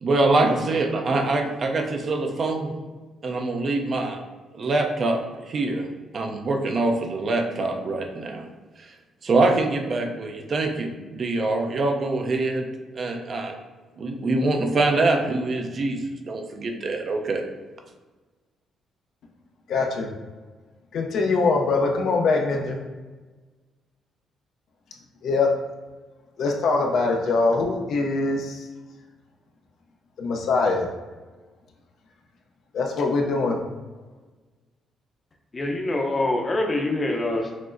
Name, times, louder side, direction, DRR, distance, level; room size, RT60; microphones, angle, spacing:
voice 1, 0.0-2.7 3.2-4.2 4.5-5.9 6.1-8.5 8.8-8.9 9.2-12.7 12.9-13.5 14.0-17.4, right 2 dB, 50° right, 4 dB, 0.5 m, -24 dB
voice 2, 19.7-20.1 20.9-22.8 25.2-25.5 26.4-28.7 30.2-30.9 32.7-33.6, left 3 dB, 70° left, 1 dB, 0.5 m, -23 dB
voice 3, 35.5-37.6, left 2 dB, 30° left, 1 dB, 0.6 m, -25 dB
6.0 x 2.0 x 2.5 m, 1.3 s
cardioid pair, 90°, 0 cm